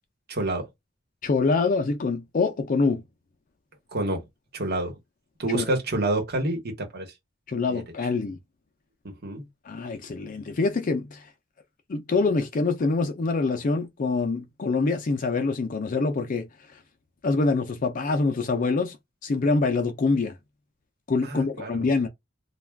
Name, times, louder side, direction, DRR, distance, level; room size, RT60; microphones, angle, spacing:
voice 1, 0.3-0.7 3.9-4.2 4.5-5.0 5.4-7.1 7.7-7.8 9.0-9.4 21.2-21.9, right 2 dB, 55° right, 1.1 m, -28 dB
voice 2, 1.2-3.0 5.5-5.7 7.5-8.4 9.7-11.2 11.9-16.5 17.2-19.0 19.2-20.3 21.1-22.1, left 3 dB, 45° left, 0.4 m, -25 dB
2.3 x 2.3 x 3.2 m
head